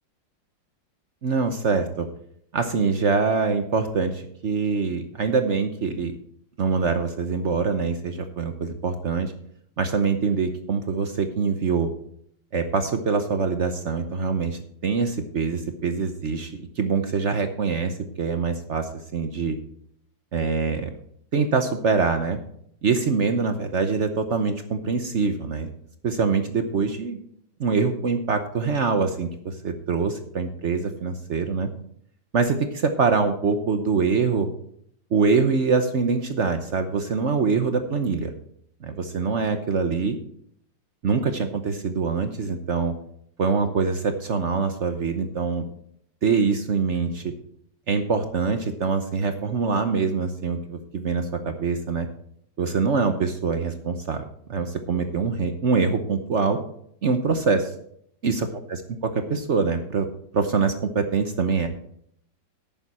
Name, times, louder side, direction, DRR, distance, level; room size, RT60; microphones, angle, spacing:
voice 1, 1.2-2.1 2.5-6.1 6.6-9.3 9.8-11.9 12.5-19.6 20.3-20.9 21.3-22.4 22.8-25.7 26.0-27.2 27.6-31.7 32.3-34.5 35.1-38.3 38.8-40.2 41.0-42.9 43.4-45.6 46.2-47.3 47.9-52.1 52.6-56.6 57.0-57.7 58.2-60.1 60.3-61.7, right 5 dB, 50° right, 8 dB, 0.9 m, -24 dB
11.0 x 9.0 x 4.2 m, 0.67 s
omnidirectional pair, 2.0 m